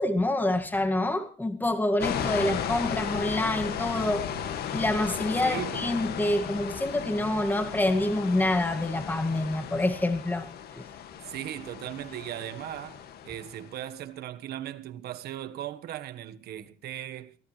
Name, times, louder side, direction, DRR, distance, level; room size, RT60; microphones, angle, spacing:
voice 1, 0.0-4.3 4.7-10.5 10.8-10.9, left 1 dB, 10° left, 2.0 m, -27 dB
sound 1, 2.0-13.8, left 8 dB, 70° left, 2.1 m, -35 dB
voice 2, 5.4-5.9 11.2-17.4, right 12 dB, 70° right, 1.4 m, -38 dB
23.5 x 17.0 x 3.3 m
cardioid pair, 110°, 17 cm